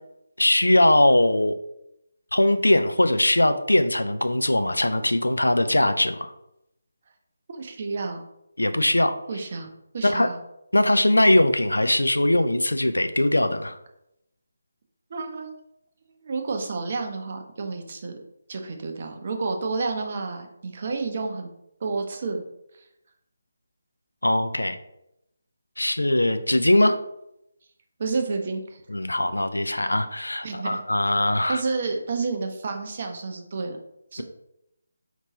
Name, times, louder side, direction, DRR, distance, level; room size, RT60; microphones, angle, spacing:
voice 1, 0.4-1.6 2.3-6.3 8.6-9.2 10.0-10.3 10.7-13.8 24.2-24.8 25.8-27.0 28.9-31.6, left 1 dB, 75° left, 9 dB, 0.4 m, -21 dB
voice 2, 7.5-8.2 9.3-9.7 9.9-10.4 15.1-15.5 16.2-18.1 18.5-21.5 21.8-22.4 28.0-28.8 30.4-30.8 31.5-33.8 34.1-34.2, right 4 dB, 40° right, 4 dB, 0.6 m, -30 dB
4.4 x 2.9 x 2.8 m, 0.82 s
figure-of-eight pair, 150°, 0 cm